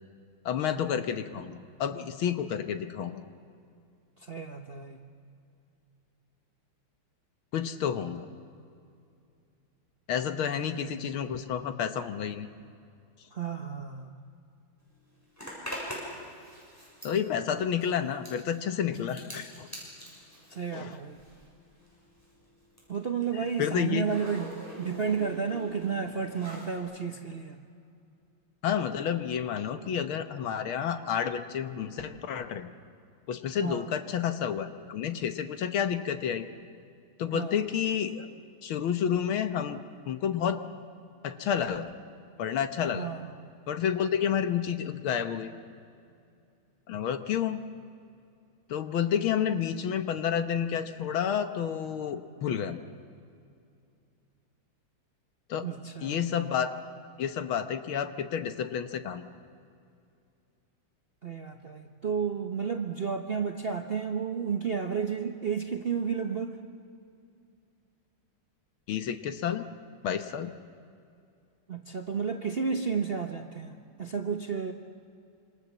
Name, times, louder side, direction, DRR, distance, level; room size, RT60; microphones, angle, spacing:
voice 1, 0.5-3.2 7.5-8.3 10.1-12.5 17.0-19.7 20.7-21.0 23.6-24.1 28.6-32.7 33.3-36.5 37.2-38.3 38.6-40.6 41.2-41.9 42.4-43.1 43.7-45.5 46.9-47.6 48.7-52.8 55.5-55.7 56.0-56.7 57.2-59.2 68.9-69.6 70.0-70.5, left 8 dB, 70° left, 9 dB, 1.9 m, -30 dB
voice 2, 4.2-5.0 10.6-11.1 13.3-14.1 20.5-21.2 22.9-24.5 24.8-27.6 33.6-33.9 37.3-37.6 43.0-43.5 55.6-56.2 61.2-66.6 71.7-74.7, right 6 dB, 40° right, 4 dB, 0.9 m, -32 dB
Zipper (clothing), 15.4-21.5 21.8-26.8, equal, 5° left, 7.0 m, -44 dB
26.5 x 26.0 x 7.4 m, 2.5 s
omnidirectional pair, 2.4 m